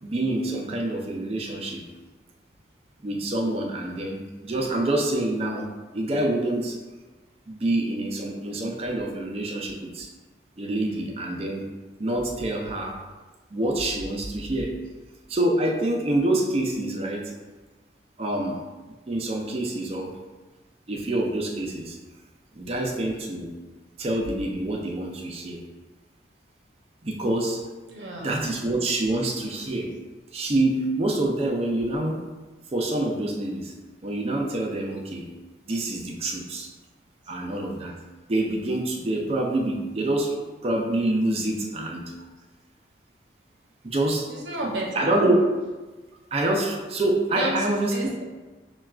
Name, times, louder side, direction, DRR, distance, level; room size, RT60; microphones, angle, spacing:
voice 1, 0.0-1.8 3.0-5.7 5.9-6.8 7.5-10.1 10.6-11.6 12.0-13.0 13.5-14.7 15.3-17.2 18.2-18.6 19.1-20.1 20.9-22.0 22.6-23.5 24.0-25.6 27.0-27.6 28.2-29.9 30.3-32.2 32.7-33.7 34.0-35.3 35.7-36.7 37.3-38.0 38.3-40.3 40.6-42.0 43.8-44.3 44.6-45.4 46.3-48.1, right 1 dB, 30° right, 0 dB, 0.4 m, -26 dB
voice 2, 27.9-28.5 44.3-45.2 47.3-48.2, right 2 dB, 70° right, -2 dB, 0.6 m, -32 dB
5.8 x 2.2 x 2.3 m, 1.2 s
head